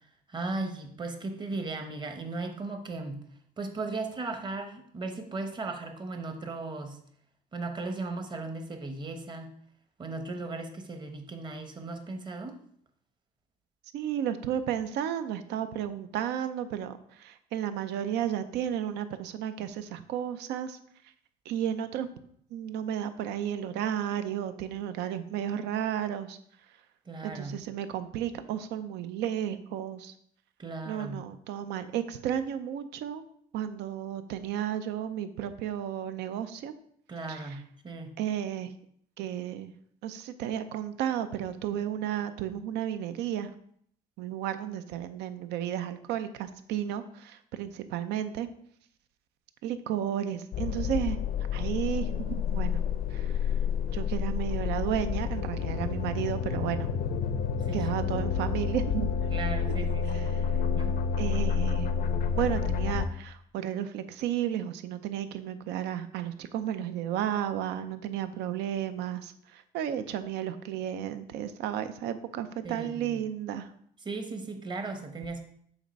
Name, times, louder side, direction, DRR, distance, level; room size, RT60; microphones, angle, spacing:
voice 1, 0.3-3.2 3.6-7.0 7.5-9.5 10.0-12.6 27.1-27.6 30.6-31.2 37.1-38.2 57.7-58.3 59.3-60.3 60.8-61.0 72.6-73.2 74.0-75.4, right 3 dB, 25° right, 6 dB, 0.8 m, -37 dB
voice 2, 13.9-20.8 21.5-22.1 22.5-26.4 27.2-30.1 30.9-33.2 33.5-36.7 37.3-37.4 38.2-38.7 39.2-39.7 40.0-43.5 44.2-48.5 49.6-51.2 51.5-52.8 53.1-53.5 53.9-56.9 57.7-59.2 60.1-60.3 61.2-61.9 62.4-73.7, right 10 dB, 85° right, 11 dB, 0.6 m, -33 dB
sound 1, 50.5-63.1, left 6 dB, 60° left, 0.5 m, -29 dB
7.1 x 2.6 x 5.2 m, 0.64 s
cardioid pair, 110°, 17 cm